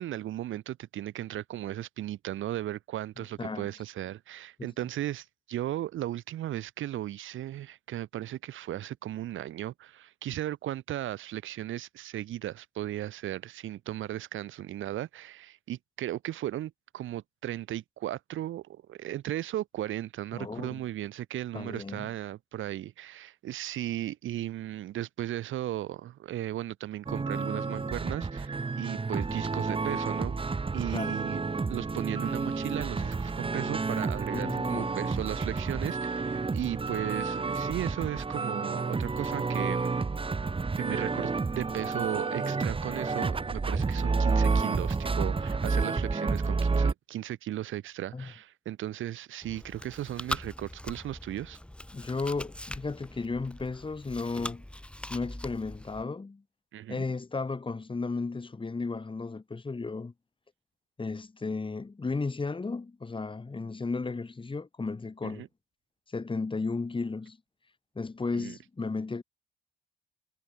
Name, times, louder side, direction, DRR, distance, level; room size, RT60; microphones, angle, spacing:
voice 1, 0.0-30.4 30.7-31.4 31.7-40.1 40.8-51.6 56.7-57.0 65.2-65.5 68.3-68.6, right 13 dB, 80° right, 7.1 m, -36 dB
voice 2, 3.2-3.7 4.6-4.7 20.3-20.8 21.5-22.1 30.9-31.2 34.3-34.9 48.1-48.3 51.9-54.6 55.1-56.4 56.9-60.1 61.0-65.5 66.1-67.4 68.0-69.2, left 3 dB, 25° left, 5.4 m, -34 dB
sound 1, 27.1-46.9, right 4 dB, 25° right, 2.8 m, -30 dB
Chewing mastication, 49.4-56.0, left 1 dB, 5° left, 4.3 m, -41 dB
cardioid pair, 90°, 20 cm